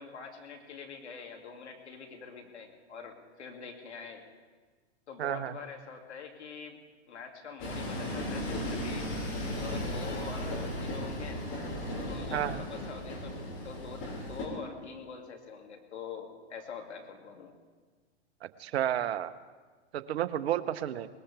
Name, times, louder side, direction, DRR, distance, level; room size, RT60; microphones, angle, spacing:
voice 1, 0.0-4.2 5.1-6.8 7.1-11.4 11.9-13.3 13.6-17.5, left 5 dB, 80° left, 2 dB, 2.6 m, -44 dB
voice 2, 5.2-5.6 12.3-12.6 18.4-19.3 19.9-21.1, right 11 dB, 65° right, 13 dB, 0.9 m, -31 dB
Train, 7.6-14.5, left 1 dB, 40° left, 5.2 m, -36 dB
20.0 x 20.0 x 3.4 m, 1.4 s
hypercardioid pair, 110°, 33 cm